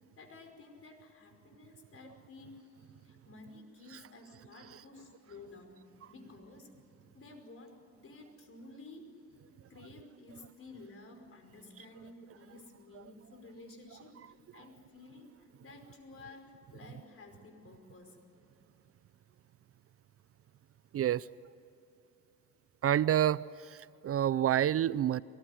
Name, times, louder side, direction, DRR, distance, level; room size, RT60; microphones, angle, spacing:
voice 1, 0.2-5.8 6.1-6.7 7.1-9.2 9.7-18.2, left 2 dB, 45° left, 4 dB, 5.2 m, -53 dB
voice 2, 20.9-21.3 22.8-25.2, right 11 dB, 50° right, 19 dB, 0.5 m, -28 dB
23.5 x 19.5 x 10.0 m, 2.7 s
cardioid pair, 90°, 30 cm